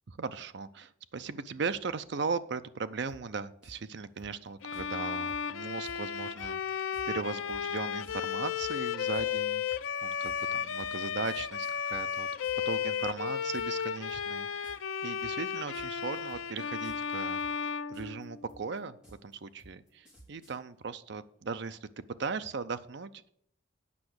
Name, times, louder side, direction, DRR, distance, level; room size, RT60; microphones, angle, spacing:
voice 1, 0.1-12.3 12.7-14.7 15.0-17.4 17.9-23.3, right 5 dB, 55° right, 12 dB, 0.5 m, -38 dB
sound 1, 3.1-3.2 3.6-3.8 4.2-4.9 5.3-5.4 5.8-6.0 6.4-12.7 13.0-13.8 14.1-14.4 14.6-14.9 15.2-16.0 16.3-17.1 17.4-20.6, right 1 dB, 5° right, 4.4 m, -55 dB
Bowed string instrument, 4.6-18.7, left 7 dB, 80° left, 0.5 m, -34 dB
8.5 x 5.7 x 7.8 m, 0.67 s
head